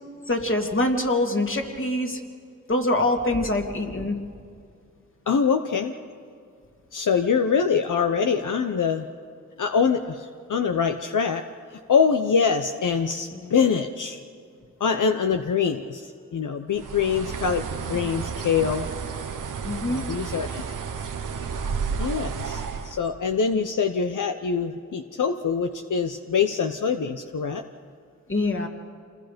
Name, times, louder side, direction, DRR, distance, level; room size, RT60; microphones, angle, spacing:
voice 1, 0.3-2.2 2.7-4.2 13.3-13.5 19.6-20.1 28.3-28.7, left 1 dB, 40° left, 2 dB, 2.8 m, -24 dB
voice 2, 5.3-5.9 6.9-9.1 9.6-11.4 11.7-14.2 14.8-18.9 19.9-20.6 22.0-27.6, left 6 dB, 80° left, 6 dB, 0.9 m, -24 dB
Bird, 16.7-23.0, right 6 dB, 85° right, 1.1 m, -31 dB
27.5 x 20.5 x 5.2 m, 2.3 s
cardioid pair, 45°, 31 cm